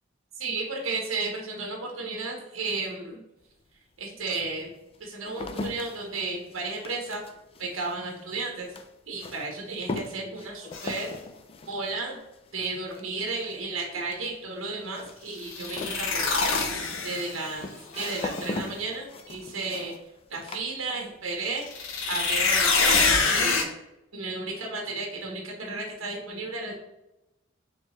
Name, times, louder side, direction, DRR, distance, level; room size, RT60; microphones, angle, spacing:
voice 1, 0.4-3.2 4.0-4.7 5.0-7.2 7.6-8.7 9.1-11.1 11.7-12.2 12.5-16.3 17.0-19.9 20.3-21.7 22.1-23.7 24.1-26.8, right 3 dB, 75° right, 0 dB, 1.0 m, -33 dB
sound 1, 3.4-3.5 4.2-21.4 21.7-22.2, left 2 dB, 30° left, 0.4 m, -40 dB
sound 2, 10.7-11.0 15.4-17.5 18.0-18.6 21.6-23.6, left 4 dB, 75° left, 0.7 m, -25 dB
4.4 x 3.2 x 3.1 m, 0.93 s
head